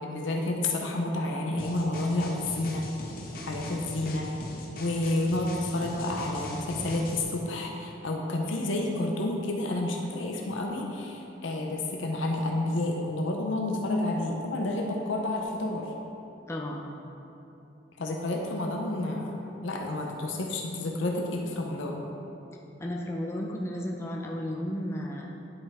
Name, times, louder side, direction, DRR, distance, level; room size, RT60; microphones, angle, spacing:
voice 1, 0.0-2.8 3.4-4.3 4.7-15.9 18.0-22.0, left 2 dB, 85° left, 1 dB, 0.7 m, -30 dB
sound 1, 1.6-7.2, left 1 dB, 50° left, 0.9 m, -40 dB
voice 2, 16.5-16.9 22.8-25.3, left 1 dB, 15° left, -1 dB, 0.5 m, -33 dB
9.2 x 5.5 x 3.5 m, 2.9 s
head